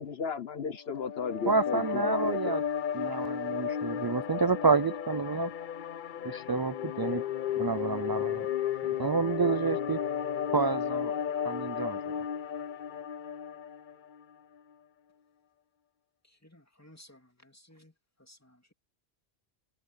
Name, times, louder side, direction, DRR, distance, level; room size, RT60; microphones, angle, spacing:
voice 1, 0.0-2.5 3.1-3.2, left 6 dB, 70° left, 1.3 m, -35 dB
sound 1, 0.9-14.2, left 9 dB, 55° left, 0.7 m, -34 dB
voice 2, 1.5-2.6 2.9-5.5 6.2-7.2 7.6-8.5 9.0-10.0 10.5-11.1 11.4-12.1, right 4 dB, 40° right, 0.3 m, -29 dB
voice 3, 16.2-17.9 18.2-18.7, left 1 dB, 15° left, 2.9 m, -57 dB
omnidirectional pair, 1.1 m